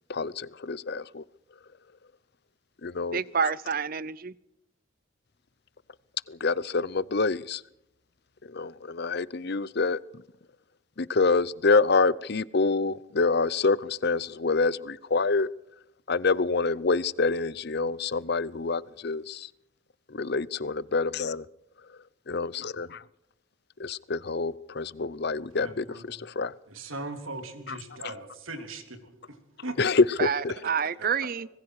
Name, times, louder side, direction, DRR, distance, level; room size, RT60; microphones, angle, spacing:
voice 1, 0.1-1.2 2.8-3.2 6.3-7.6 8.5-10.0 11.0-15.5 16.1-19.5 20.1-21.4 22.3-23.0 23.8-26.5 29.8-30.5, left 4 dB, 50° left, 0.7 m, -26 dB
voice 2, 3.1-4.3 30.2-31.5, right 6 dB, 45° right, 0.7 m, -28 dB
voice 3, 25.5-26.1 26.7-29.9, right 2 dB, 80° right, 3.4 m, -39 dB
25.5 x 21.5 x 4.9 m
head